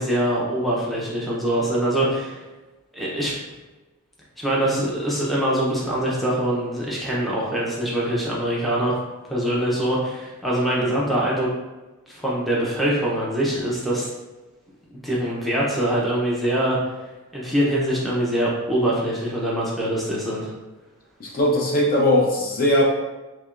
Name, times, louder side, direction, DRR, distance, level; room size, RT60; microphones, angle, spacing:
voice 1, 0.0-2.4 2.9-3.3 4.4-9.0 9.3-11.5 12.1-14.1 15.0-16.8 17.3-20.5, right 1 dB, ahead, -6 dB, 0.6 m, -23 dB
voice 2, 21.2-22.8, left 1 dB, 40° left, -2 dB, 0.7 m, -20 dB
5.8 x 2.2 x 2.4 m, 1.1 s
head